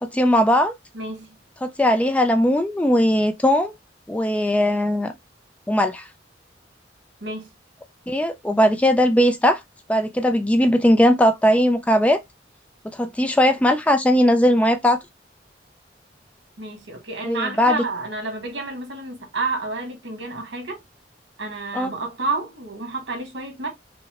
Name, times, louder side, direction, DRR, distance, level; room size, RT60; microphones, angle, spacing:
voice 1, 0.0-0.7 1.6-3.7 4.1-5.1 5.7-6.1 8.1-9.6 9.9-12.2 12.9-15.0 17.2-17.8 21.7-21.9, equal, 10° left, 0.3 m, -19 dB
voice 2, 0.9-1.3 7.2-7.5 16.6-20.8 21.4-23.7, right 3 dB, 75° right, 1.6 m, -30 dB
5.4 x 2.1 x 2.9 m
head